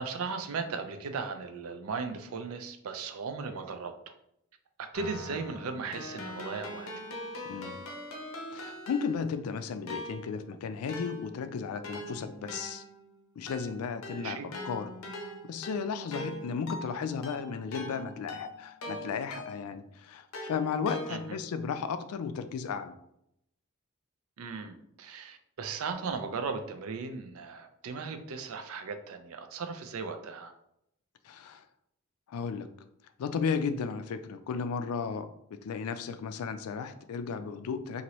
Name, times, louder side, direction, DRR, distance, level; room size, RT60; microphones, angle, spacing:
voice 1, 0.0-4.1 4.8-6.9 14.1-14.5 21.1-21.4 24.4-30.5, right 4 dB, 75° right, 7 dB, 0.4 m, -37 dB
Keyboard (musical), 4.9-9.5 9.9-19.8 20.3-21.5, left 1 dB, 70° left, 0.7 m, -42 dB
voice 2, 7.5-7.8 8.5-12.8 13.4-14.9 15.1-23.0 31.2-31.6 32.3-32.7 33.2-38.0, left 6 dB, 90° left, 9 dB, 0.3 m, -34 dB
2.8 x 2.6 x 3.0 m, 0.76 s
head